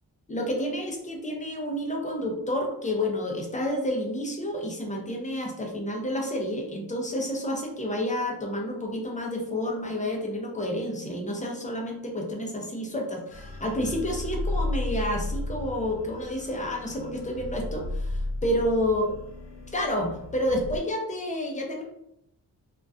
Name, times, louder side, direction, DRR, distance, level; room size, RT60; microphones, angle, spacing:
voice 1, 0.3-19.0 19.7-21.8, left 1 dB, 20° left, 0 dB, 0.5 m, -30 dB
sound 1, 13.3-20.8, left 2 dB, 85° left, 0.6 m, -34 dB
2.5 x 2.2 x 2.3 m, 0.76 s
wide cardioid pair, 105°, 40 cm